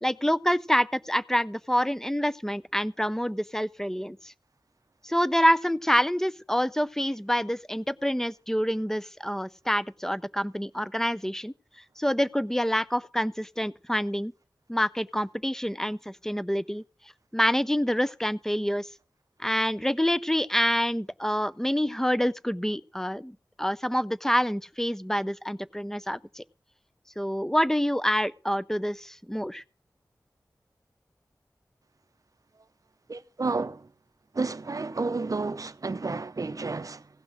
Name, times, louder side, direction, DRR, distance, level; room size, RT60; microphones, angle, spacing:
voice 1, 0.0-4.3 5.0-11.5 12.0-14.3 14.7-16.8 17.3-18.9 19.4-26.4 27.2-29.6, equal, 5° left, 0.5 m, -27 dB
voice 2, 33.1-33.9 34.3-37.1, right 3 dB, 50° right, 0.6 m, -31 dB
16.0 x 6.0 x 6.4 m
wide cardioid pair, 65°, 8 cm